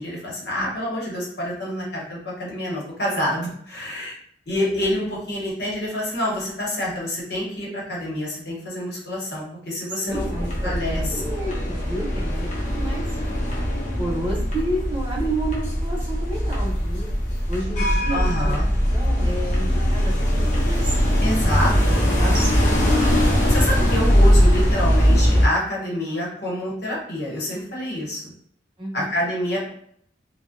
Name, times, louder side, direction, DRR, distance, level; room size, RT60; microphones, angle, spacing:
voice 1, 0.0-4.2 4.5-10.3 10.6-11.0 18.1-18.7 21.2-22.0 23.5-28.3 28.9-29.7, left 1 dB, 65° left, -5 dB, 0.9 m, -27 dB
voice 2, 10.0-13.1 14.0-17.1 17.5-18.6 18.9-21.3 21.9-23.3 28.8-29.1, right 1 dB, 30° right, -5 dB, 0.7 m, -31 dB
sound 1, 10.1-25.5, equal, 45° left, 0.6 m, -20 dB
2.6 x 2.1 x 2.4 m, 0.67 s
head